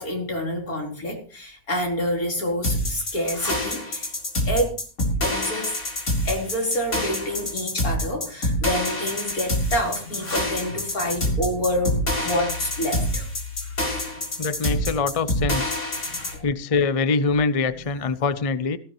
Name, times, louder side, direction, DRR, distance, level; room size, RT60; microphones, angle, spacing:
voice 1, 0.0-4.1 4.4-4.8 5.2-5.8 6.2-13.3 13.6-13.7 15.6-15.7 16.0-16.4 17.7-17.8, left 1 dB, 70° left, 4.6 m, -27 dB
sound 1, 2.6-16.3, left 1 dB, 50° left, 4.1 m, -26 dB
voice 2, 14.4-15.8 16.4-18.8, left 4 dB, 35° left, 0.6 m, -24 dB
17.5 x 15.0 x 3.1 m
omnidirectional pair, 1.6 m